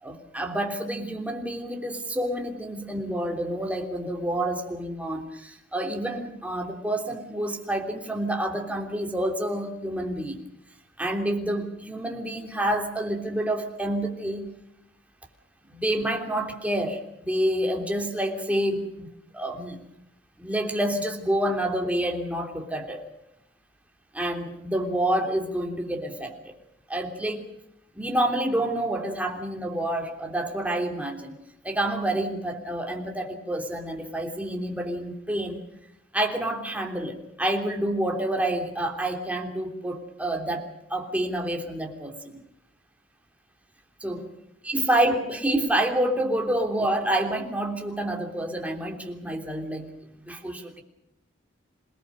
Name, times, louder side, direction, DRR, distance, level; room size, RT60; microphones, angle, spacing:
voice 1, 0.0-10.4 11.0-14.5 15.7-19.1 19.3-19.8 20.4-23.1 24.1-26.5 26.9-27.5 27.9-31.3 31.6-35.6 36.1-42.4 44.0-44.3 44.6-49.9 50.2-50.8, right 1 dB, 5° right, 2 dB, 3.2 m, -28 dB
27.5 x 19.0 x 6.6 m, 0.80 s
head